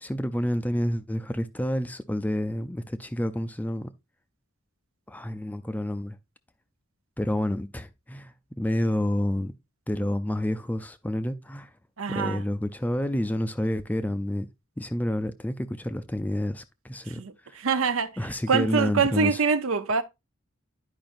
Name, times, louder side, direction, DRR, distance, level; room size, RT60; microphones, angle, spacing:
voice 1, 0.0-3.9 5.1-6.2 7.2-9.5 9.9-11.7 12.1-14.5 14.8-17.2 18.2-19.4, left 1 dB, 10° left, 0.4 m, -29 dB
voice 2, 12.0-12.4 17.2-17.3 17.6-18.1 18.5-20.0, right 5 dB, 85° right, 0.7 m, -24 dB
10.5 x 4.9 x 2.5 m
head